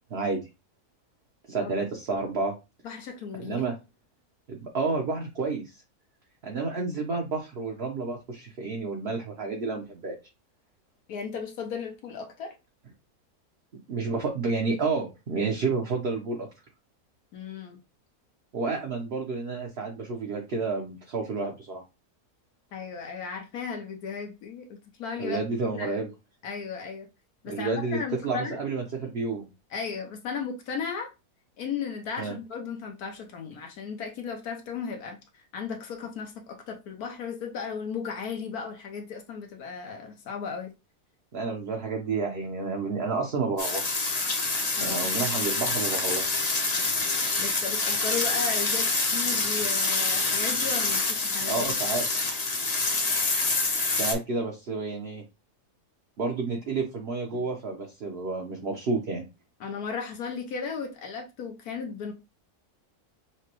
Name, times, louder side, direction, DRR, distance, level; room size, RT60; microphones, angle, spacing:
voice 1, 0.1-0.4 1.5-2.5 3.4-3.7 4.5-5.8 6.4-10.2 13.9-16.5 18.5-21.8 25.2-26.1 27.5-29.5 32.2-32.3 41.3-44.0 44.8-46.4 51.5-52.1 54.0-55.2 56.2-59.2, right 4 dB, 50° right, 0.9 m, -30 dB
voice 2, 2.8-3.6 11.1-12.5 17.3-17.8 22.7-26.0 26.4-27.1 27.4-28.6 29.7-31.1 31.6-40.7 44.8-45.1 47.4-51.7 59.6-62.1, left 6 dB, 75° left, 1.3 m, -35 dB
sound 1, 43.6-54.1, left 3 dB, 35° left, 0.7 m, -26 dB
5.9 x 2.2 x 2.9 m
omnidirectional pair, 1.6 m